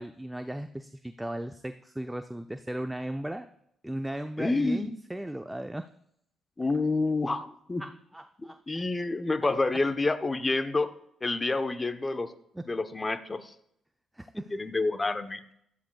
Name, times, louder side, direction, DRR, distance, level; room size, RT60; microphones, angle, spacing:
voice 1, 0.0-3.5 3.8-5.9 7.8-8.6 12.5-12.6 14.2-14.6, right 1 dB, 10° right, 8 dB, 0.6 m, -36 dB
voice 2, 4.4-4.9 6.6-7.8 8.4-10.9 11.2-12.3 12.7-13.5 14.5-15.4, left 3 dB, 25° left, 11 dB, 0.9 m, -28 dB
15.5 x 11.0 x 2.4 m, 0.73 s
hypercardioid pair, 45°, 0 cm